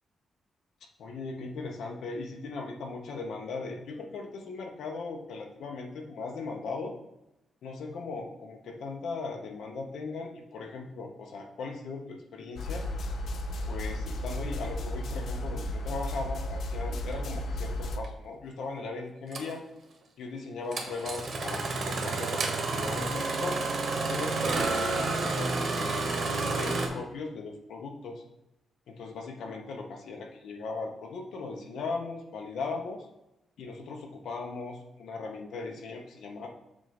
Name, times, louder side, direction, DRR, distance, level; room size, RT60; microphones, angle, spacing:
voice 1, 1.0-6.9 7.6-12.9 13.7-19.6 20.2-23.6 24.1-26.2 26.4-28.2 28.9-33.1 33.6-36.5, left 4 dB, 75° left, 2 dB, 0.9 m, -38 dB
sound 1, 12.6-18.0, left 1 dB, 60° left, 0.5 m, -34 dB
Engine starting, 18.0-18.1 19.3-19.5 20.7-26.9, right 3 dB, 50° right, 1.0 m, -30 dB
7.3 x 2.5 x 5.1 m, 0.88 s
wide cardioid pair, 145°, 0 cm